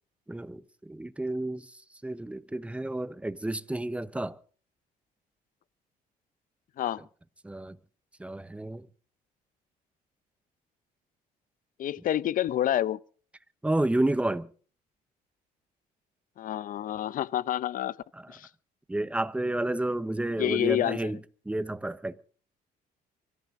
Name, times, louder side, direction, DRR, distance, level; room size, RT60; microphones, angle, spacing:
voice 1, 0.3-1.7 2.0-4.4 7.4-7.8 8.2-8.9 13.6-14.5 18.1-18.4 18.9-22.2, right 1 dB, 5° right, 1.0 m, -31 dB
voice 2, 11.8-13.0 16.4-17.9 18.3-18.4 20.4-21.1, left 11 dB, 55° left, 0.7 m, -28 dB
24.5 x 14.5 x 3.8 m
cardioid pair, 110°, 17 cm